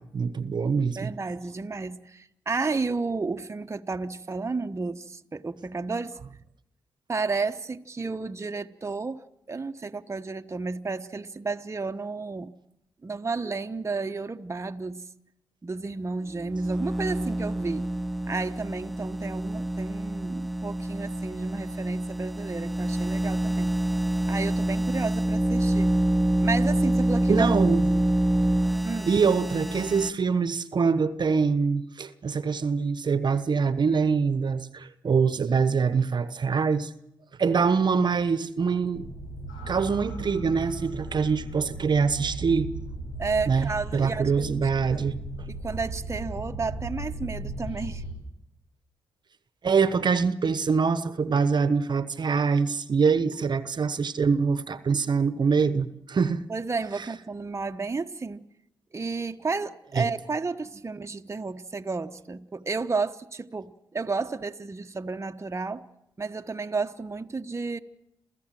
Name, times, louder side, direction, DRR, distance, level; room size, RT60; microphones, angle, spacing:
voice 1, 0.0-1.1 27.3-27.9 29.1-36.9 37.4-39.1 39.7-42.7 43.5-45.5 49.6-56.4 60.0-60.1, right 5 dB, 50° right, 1.2 m, -24 dB
voice 2, 1.0-6.2 7.1-12.5 13.0-15.0 15.6-17.9 18.3-23.7 24.3-25.9 26.4-27.5 28.8-29.2 43.2-45.0 45.5-48.0 56.5-58.4 58.9-65.8 66.2-67.8, right 4 dB, 30° right, 1.2 m, -32 dB
sound 1, 16.2-30.1, right 1 dB, ahead, 0.7 m, -26 dB
sound 2, 38.9-48.1, right 2 dB, 90° left, 4.0 m, -36 dB
28.0 x 15.5 x 7.7 m
supercardioid pair, 45°, 9 cm